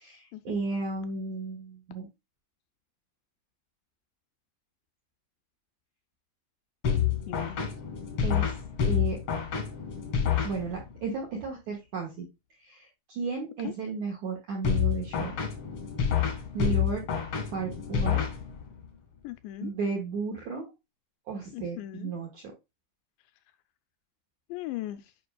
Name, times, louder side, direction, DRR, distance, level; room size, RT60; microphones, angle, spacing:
voice 1, 0.0-2.1 8.2-8.5 8.9-9.2 10.4-12.3 12.6-15.4 16.5-17.0 17.5-18.2 19.6-20.7 21.3-22.4, right 4 dB, 70° right, 1.7 m, -34 dB
sound 1, 6.8-11.0 14.6-18.9, left 8 dB, 65° left, 1.4 m, -28 dB
voice 2, 7.3-7.7 13.6-13.7 19.2-19.7 21.5-22.1 24.5-25.1, left 15 dB, 85° left, 2.5 m, -38 dB
9.4 x 5.4 x 2.2 m
omnidirectional pair, 5.3 m